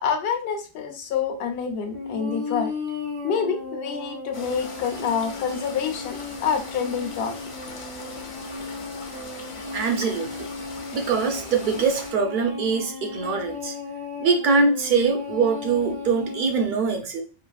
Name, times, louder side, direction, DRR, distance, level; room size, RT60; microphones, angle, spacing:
voice 1, 0.0-2.7 3.2-7.3, left 6 dB, 70° left, 6 dB, 0.8 m, -27 dB
sound 1, 1.9-16.7, left 4 dB, 85° right, 1.0 m, -35 dB
sound 2, 4.3-12.1, left 2 dB, 45° left, 0.4 m, -40 dB
voice 2, 9.7-10.3 10.9-13.8 14.2-17.2, right 4 dB, 55° right, 4 dB, 0.7 m, -23 dB
3.3 x 2.3 x 2.3 m, 0.35 s
omnidirectional pair, 1.1 m